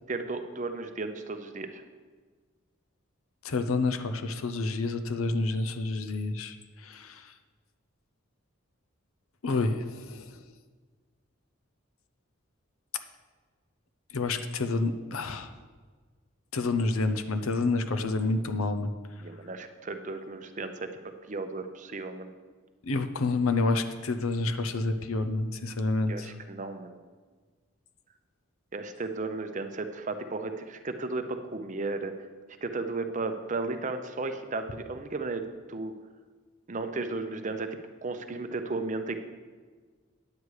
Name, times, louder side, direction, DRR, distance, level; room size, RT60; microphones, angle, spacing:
voice 1, 0.1-1.8 19.2-20.9 21.3-22.3 26.1-27.0 28.7-32.1 32.6-35.9 36.7-37.7 38.0-39.2, right 3 dB, 35° right, 8 dB, 0.6 m, -34 dB
voice 2, 3.4-6.6 6.8-7.3 9.4-10.3 14.1-15.5 16.5-18.9 22.9-26.3, left 3 dB, 85° left, 9 dB, 0.7 m, -28 dB
9.5 x 8.2 x 4.8 m, 1.5 s
head